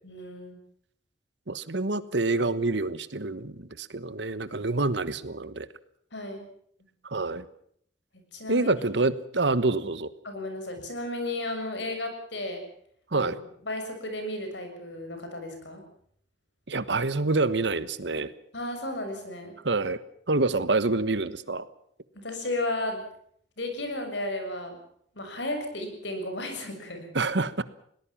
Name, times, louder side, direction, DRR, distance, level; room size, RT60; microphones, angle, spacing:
voice 1, 0.0-0.6 6.1-6.5 8.3-8.7 10.2-12.6 13.1-13.3 13.6-15.8 18.5-19.6 22.1-23.0 23.6-24.8 25.1-27.1, left 1 dB, 70° left, 6 dB, 6.6 m, -34 dB
voice 2, 1.5-5.7 7.1-7.5 8.5-10.1 13.1-13.4 16.7-18.3 19.6-20.0 20.3-21.7 27.1-27.6, right 3 dB, 65° right, 15 dB, 1.3 m, -27 dB
22.0 x 19.0 x 7.3 m, 0.65 s
head